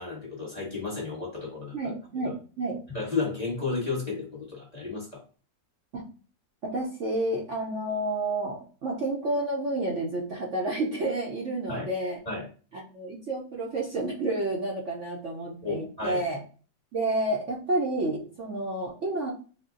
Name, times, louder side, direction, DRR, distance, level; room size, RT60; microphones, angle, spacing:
voice 1, 0.0-1.8 2.9-5.2 11.7-11.9 12.2-12.5 15.6-16.2, left 4 dB, 25° left, -5 dB, 1.1 m, -32 dB
voice 2, 1.7-2.8 5.9-6.0 6.6-12.2 12.7-16.4 16.9-19.3, right 2 dB, 55° right, -3 dB, 0.9 m, -30 dB
3.7 x 2.2 x 3.7 m, 0.38 s
omnidirectional pair, 1.8 m